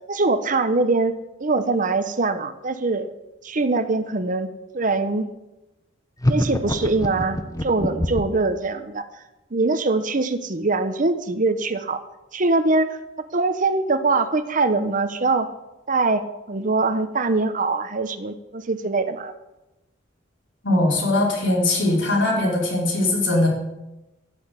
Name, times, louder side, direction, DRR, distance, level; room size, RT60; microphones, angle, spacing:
voice 1, 0.1-1.1 1.4-3.1 3.4-4.5 4.7-5.3 6.3-9.0 9.5-12.0 12.3-12.9 13.2-15.5 15.9-19.3, right 3 dB, 40° right, 10 dB, 1.0 m, -22 dB
sound 1, 6.2-8.4, left 1 dB, 15° left, 1.1 m, -24 dB
voice 2, 20.6-23.5, left 1 dB, 65° left, -2 dB, 4.5 m, -20 dB
12.0 x 9.8 x 8.4 m, 0.98 s
head